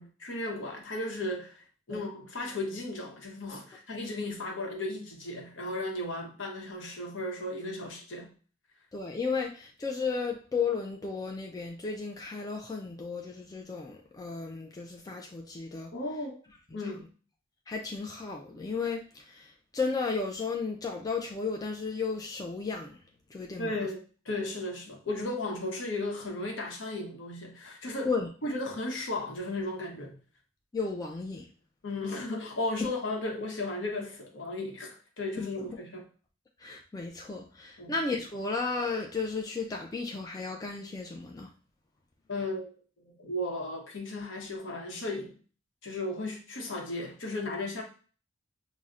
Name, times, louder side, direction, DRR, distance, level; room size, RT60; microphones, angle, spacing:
voice 1, 0.0-8.3 15.9-16.3 16.7-17.1 23.6-28.1 28.4-30.2 31.8-36.1 37.8-37.9 42.3-42.7 43.1-45.4 45.8-47.8, left 2 dB, 70° left, 1 dB, 0.8 m, -35 dB
voice 2, 8.9-15.9 17.7-23.0 23.3-23.7 28.1-28.3 30.7-31.5 32.8-32.9 35.4-35.5 36.6-41.5, left 4 dB, 20° left, 1 dB, 0.3 m, -34 dB
5.4 x 2.0 x 2.4 m, 0.39 s
head